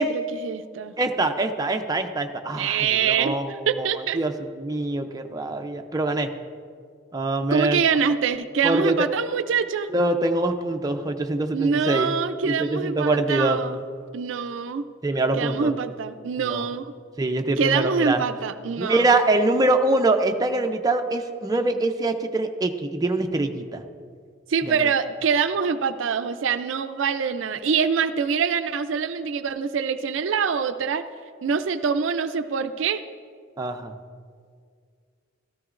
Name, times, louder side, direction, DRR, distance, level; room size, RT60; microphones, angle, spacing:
voice 1, 0.0-0.9 2.6-4.2 7.5-9.9 11.5-13.8 14.1-14.9 15.3-17.0 17.6-19.0 24.5-31.0 31.4-33.0, right 6 dB, 70° right, 11 dB, 0.4 m, -25 dB
voice 2, 1.0-3.9 4.1-6.3 7.1-7.8 8.6-9.1 9.9-12.1 12.4-13.6 15.0-15.7 16.5-16.7 17.2-18.2 18.8-23.8 24.7-24.8 33.6-33.9, right 2 dB, 20° right, 5 dB, 0.5 m, -24 dB
13.5 x 13.5 x 2.5 m, 2.1 s
head